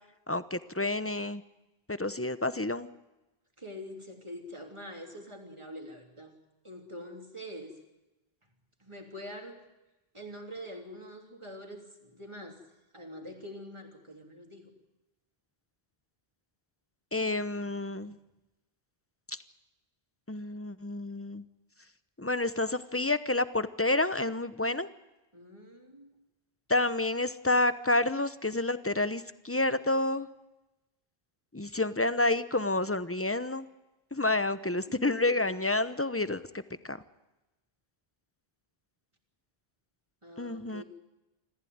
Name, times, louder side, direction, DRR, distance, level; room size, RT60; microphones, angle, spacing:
voice 1, 0.3-1.4 1.9-2.9 17.1-18.2 19.3-19.4 20.3-21.4 22.2-24.9 26.7-30.3 31.5-33.7 34.1-37.0 40.4-40.8, left 2 dB, 15° left, 13 dB, 0.8 m, -29 dB
voice 2, 3.6-6.4 6.6-7.8 8.8-9.6 10.1-12.6 12.9-14.7 25.3-26.1 34.9-35.4 40.2-40.8, equal, 30° right, 3 dB, 3.2 m, -45 dB
26.0 x 15.0 x 9.5 m, 1.0 s
omnidirectional pair, 1.0 m